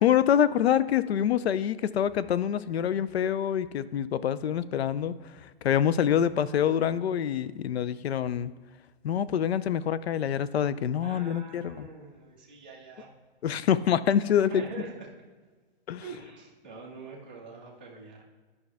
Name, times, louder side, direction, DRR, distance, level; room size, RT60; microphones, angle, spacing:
voice 1, 0.0-8.5 9.0-11.9 13.4-14.6 15.9-16.0, left 9 dB, 85° left, 16 dB, 0.5 m, -26 dB
voice 2, 11.0-13.1 14.4-14.9 16.0-18.2, right 3 dB, 10° right, -10 dB, 0.4 m, -44 dB
10.5 x 5.5 x 3.4 m, 1.4 s
hypercardioid pair, 175°, 31 cm